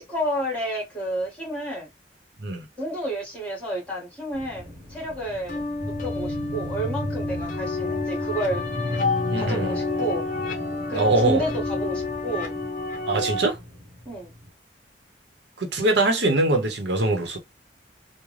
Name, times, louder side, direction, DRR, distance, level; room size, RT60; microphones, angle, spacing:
voice 1, 0.0-1.9 2.8-8.6 9.4-10.2 10.9-12.5 14.1-14.3, right 1 dB, 5° left, 1.9 m, -30 dB
sound 1, 4.3-14.5, left 1 dB, 25° right, 1.3 m, -35 dB
sound 2, 5.5-13.5, left 3 dB, 45° left, 0.6 m, -29 dB
voice 2, 9.3-9.8 10.9-11.4 13.1-13.6 15.6-17.4, right 2 dB, 75° right, 0.9 m, -22 dB
3.7 x 2.1 x 3.2 m
head